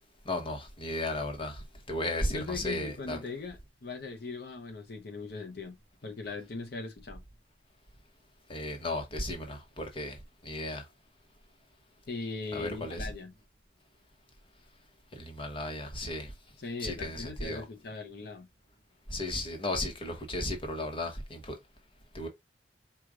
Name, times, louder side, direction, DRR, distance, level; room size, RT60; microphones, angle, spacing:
voice 1, 0.2-3.2 8.5-10.9 12.5-13.1 15.1-16.3 16.8-17.6 19.1-21.6 22.1-22.3, left 1 dB, 30° left, 1.1 m, -35 dB
voice 2, 2.3-5.8 6.0-7.2 12.1-13.3 16.6-18.5, left 4 dB, 60° left, 0.8 m, -39 dB
4.7 x 2.4 x 3.7 m
head